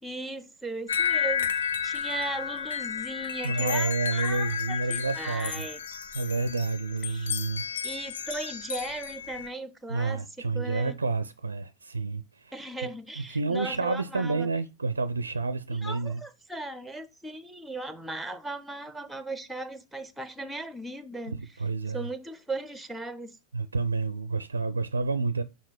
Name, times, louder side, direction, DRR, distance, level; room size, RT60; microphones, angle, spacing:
voice 1, 0.0-5.8 7.1-7.3 7.8-11.0 12.5-14.5 15.7-21.4 21.9-23.3, right 2 dB, 5° right, 0.7 m, -37 dB
sound 1, 0.9-9.5, left 8 dB, 65° left, 0.7 m, -32 dB
voice 2, 3.4-5.7 6.1-7.7 9.9-12.5 12.8-16.2 21.3-22.1 23.5-25.4, right 3 dB, 75° right, 0.4 m, -29 dB
5.8 x 4.4 x 4.5 m
figure-of-eight pair, 90°, 0 cm